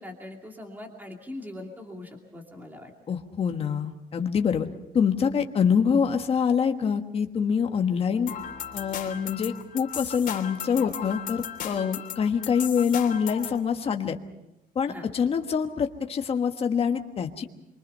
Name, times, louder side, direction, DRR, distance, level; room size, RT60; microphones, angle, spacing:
voice 1, 0.0-2.9 11.7-12.0 14.9-15.0, left 1 dB, 10° right, 2 dB, 2.6 m, -41 dB
voice 2, 3.1-4.7 4.9-8.3 8.7-14.1 14.7-17.4, left 6 dB, 35° left, 5 dB, 1.5 m, -25 dB
sound 1, 8.3-13.6, left 9 dB, 55° left, 3.2 m, -36 dB
26.5 x 24.0 x 5.6 m, 0.91 s
cardioid pair, 170°, 16 cm